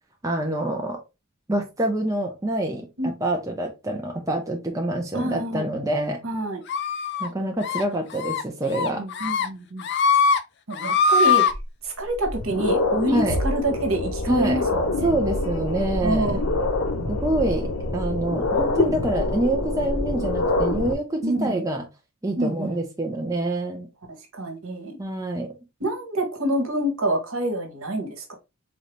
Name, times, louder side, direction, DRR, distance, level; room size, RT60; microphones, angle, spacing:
voice 1, 0.2-1.0 1.5-6.2 7.2-9.0 13.1-13.4 14.3-14.6 15.0-16.4 17.1-21.8 22.2-23.9 25.0-25.5, right 1 dB, 15° right, 0.5 m, -26 dB
voice 2, 5.1-5.7 6.2-6.6 8.9-9.8 10.7-11.5 11.8-15.1 16.0-16.7 21.2-21.6 22.4-22.8 24.3-25.0 25.8-28.4, right 1 dB, 70° right, 1.3 m, -27 dB
sound 1, 6.7-7.3 7.6-7.8 8.2-8.4 8.7-9.5 9.8-10.4 10.7-11.5, left 5 dB, 50° left, 0.4 m, -21 dB
sound 2, 11.5-11.6 12.1-20.9, left 2 dB, 75° left, 1.0 m, -25 dB
3.9 x 2.8 x 3.2 m
head